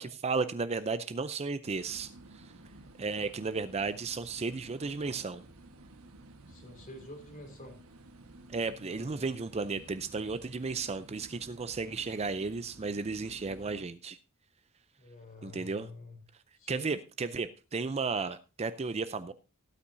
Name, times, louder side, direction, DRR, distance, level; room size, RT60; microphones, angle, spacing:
voice 1, 0.0-2.1 3.0-5.4 8.5-14.2 15.4-15.9 16.7-19.3, right 4 dB, 30° right, 12 dB, 0.5 m, -34 dB
sound 1, 1.6-13.9, right 2 dB, 70° right, 1.3 m, -53 dB
voice 2, 6.5-7.8 8.9-9.3 15.0-16.2 16.6-16.9, left 1 dB, 40° left, 4 dB, 3.2 m, -48 dB
17.5 x 8.6 x 2.6 m, 0.30 s
head